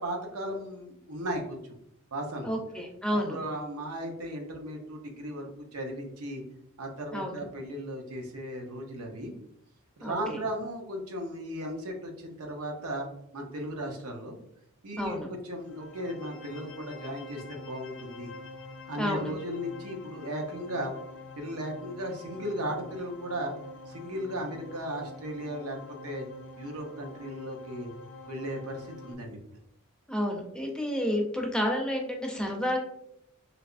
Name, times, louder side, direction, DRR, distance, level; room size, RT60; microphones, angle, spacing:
voice 1, 0.0-1.8 2.1-2.5 3.3-6.4 6.8-9.3 10.0-13.1 13.3-14.4 14.8-18.3 18.9-20.9 21.4-23.5 23.9-25.8 26.0-26.3 26.6-27.9 28.3-29.4, equal, 85° right, 2 dB, 0.7 m, -36 dB
voice 2, 2.4-3.4 7.1-7.4 10.0-10.4 15.0-15.3 19.0-19.3 30.1-32.8, equal, 5° left, 1 dB, 0.5 m, -30 dB
sound 1, 15.6-29.1, left 2 dB, 60° left, 0.5 m, -46 dB
3.3 x 2.8 x 2.4 m, 0.77 s
head